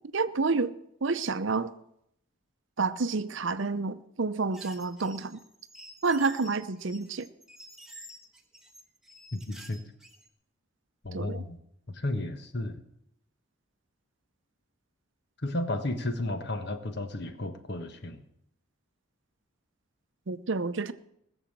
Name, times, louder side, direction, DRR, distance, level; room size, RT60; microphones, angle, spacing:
voice 1, 0.1-0.7 1.0-1.7 2.8-5.4 6.0-7.3 11.1-11.4 20.3-20.9, right 4 dB, 60° right, 13 dB, 0.7 m, -29 dB
sound 1, 4.5-10.3, equal, ahead, 1.3 m, -50 dB
voice 2, 9.3-9.8 11.0-11.6 11.9-12.8 15.4-18.2, left 1 dB, 50° left, 8 dB, 1.3 m, -33 dB
20.0 x 7.2 x 7.4 m, 0.76 s
head